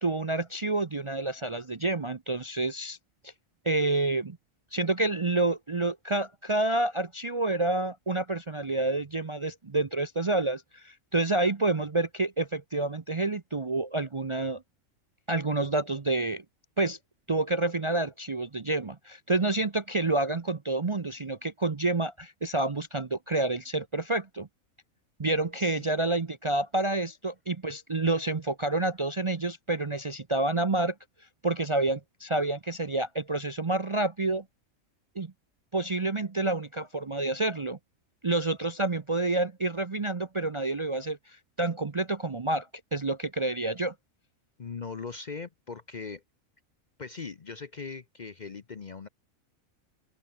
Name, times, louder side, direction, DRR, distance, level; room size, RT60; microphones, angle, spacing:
voice 1, 0.0-3.0 3.2-3.3 3.6-4.4 4.7-14.6 15.3-16.4 16.8-17.0 17.3-24.5 25.2-30.9 31.4-34.4 35.2-35.3 35.7-37.8 38.2-43.9, right 2 dB, 30° right, 0.6 m, -28 dB
voice 2, 44.6-46.2 47.0-49.1, left 5 dB, 40° left, 0.8 m, -40 dB
open air
omnidirectional pair, 1.4 m